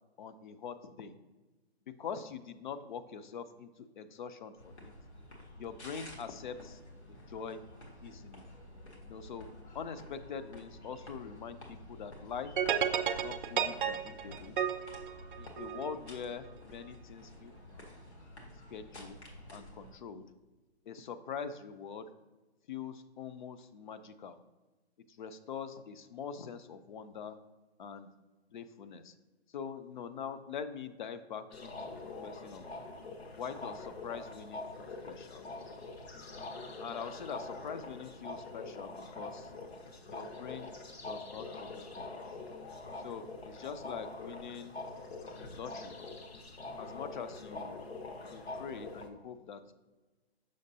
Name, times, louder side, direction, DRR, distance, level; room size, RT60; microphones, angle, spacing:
voice 1, 0.2-1.1 1.9-4.9 5.6-6.8 7.1-7.6 8.0-8.4 9.1-9.5 9.7-12.5 13.2-14.6 15.4-17.9 18.7-19.2 19.5-20.2 20.9-22.1 22.7-24.4 25.2-27.4 27.8-28.1 28.5-29.1 29.5-32.7 33.4-35.5 36.5-39.5 40.1-40.7 41.1-42.2 43.0-44.7 45.4-45.9 46.8-47.8 48.3-49.7, left 6 dB, 50° left, 11 dB, 0.5 m, -44 dB
sound 1, 4.6-19.9, left 1 dB, 85° left, 1.7 m, -51 dB
sound 2, 12.6-15.9, right 8 dB, 55° right, 0.5 m, -32 dB
sound 3, 31.5-49.1, left 3 dB, 70° left, 1.0 m, -44 dB
6.4 x 6.0 x 2.7 m, 1.2 s
hypercardioid pair, 145°, 32 cm